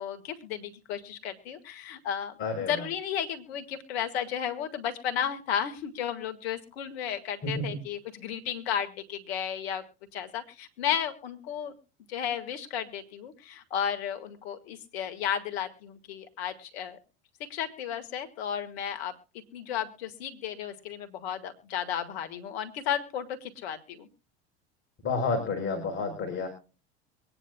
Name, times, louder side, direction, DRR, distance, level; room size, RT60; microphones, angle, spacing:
voice 1, 0.0-9.8 10.1-11.7 12.1-17.0 17.4-19.1 19.5-24.1, left 9 dB, 70° left, 9 dB, 2.0 m, -33 dB
voice 2, 2.4-2.7 7.6-7.7 25.0-26.5, left 4 dB, 35° left, 3 dB, 4.2 m, -29 dB
23.5 x 9.9 x 2.3 m, 0.35 s
hypercardioid pair, 85°, 32 cm